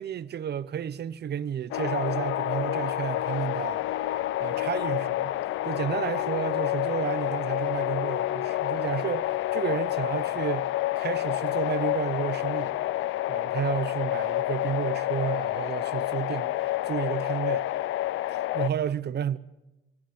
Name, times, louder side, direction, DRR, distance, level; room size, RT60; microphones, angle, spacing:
voice 1, 0.0-3.8 4.4-5.4 5.6-10.7 11.0-12.7 13.3-17.7 18.3-19.4, right 9 dB, 55° right, 1.0 m, -31 dB
sound 1, 1.7-18.7, left 15 dB, 85° left, 0.7 m, -29 dB
23.0 x 17.0 x 8.5 m
cardioid pair, 90°, 20 cm